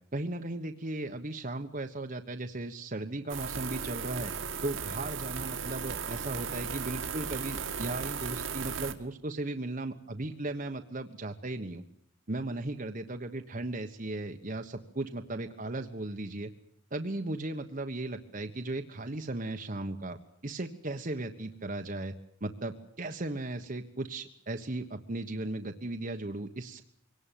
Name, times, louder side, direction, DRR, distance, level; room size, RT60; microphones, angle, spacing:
voice 1, 0.1-4.3 4.6-11.8 12.3-16.5 16.9-20.2 20.4-22.1 22.4-26.8, right 2 dB, 40° right, 5 dB, 1.3 m, -36 dB
sound 1, 3.3-8.9, right 6 dB, 75° right, 2.1 m, -36 dB
24.0 x 18.5 x 9.1 m, 0.68 s
head